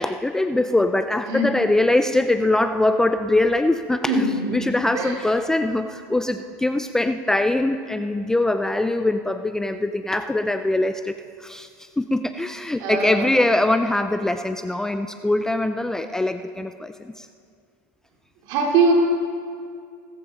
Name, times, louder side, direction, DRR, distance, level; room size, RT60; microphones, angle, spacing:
voice 1, 0.0-4.1 4.5-17.3, left 2 dB, 5° left, 8 dB, 0.4 m, -22 dB
voice 2, 4.0-4.7 4.9-5.2 12.8-13.3 18.4-18.9, right 3 dB, 55° right, 0 dB, 3.0 m, -22 dB
17.5 x 14.0 x 3.9 m, 2.2 s
supercardioid pair, 125°, 9 cm